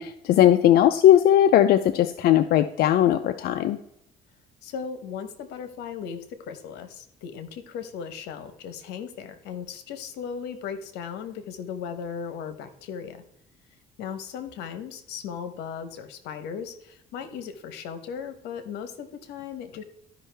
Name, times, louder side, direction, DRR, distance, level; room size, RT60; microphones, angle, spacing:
voice 1, 0.0-3.8, left 11 dB, 65° left, 9 dB, 0.5 m, -18 dB
voice 2, 4.6-13.2 14.0-19.8, left 7 dB, 85° left, 10 dB, 1.0 m, -37 dB
12.5 x 5.4 x 3.4 m, 0.80 s
cardioid pair, 110°, 17 cm